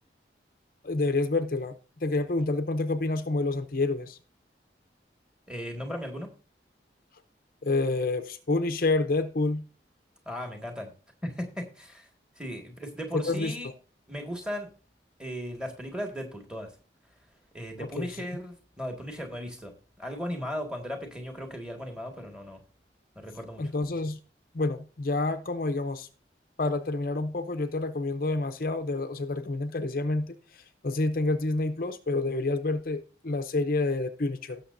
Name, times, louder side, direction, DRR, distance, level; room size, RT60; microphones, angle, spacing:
voice 1, 0.8-1.7 2.0-4.2 7.6-9.6 13.1-13.7 17.8-18.3 23.6-24.2 24.5-26.1 26.6-34.6, left 2 dB, 50° left, 9 dB, 0.6 m, -28 dB
voice 2, 5.5-6.3 10.3-10.9 11.2-12.1 12.4-13.7 14.1-14.7 15.2-16.7 17.5-19.7 20.0-22.6 23.2-23.6, equal, 5° right, 3 dB, 1.8 m, -36 dB
17.5 x 6.6 x 2.6 m, 0.36 s
head